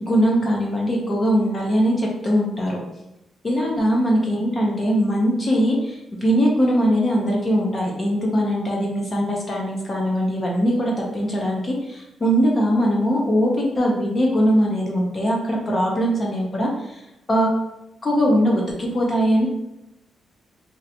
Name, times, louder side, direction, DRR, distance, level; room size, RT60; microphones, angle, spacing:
voice 1, 0.0-2.8 3.4-17.0 17.3-17.5 18.0-19.5, equal, 25° left, -2 dB, 0.5 m, -21 dB
3.1 x 2.7 x 2.7 m, 0.90 s
wide cardioid pair, 160°, 0 cm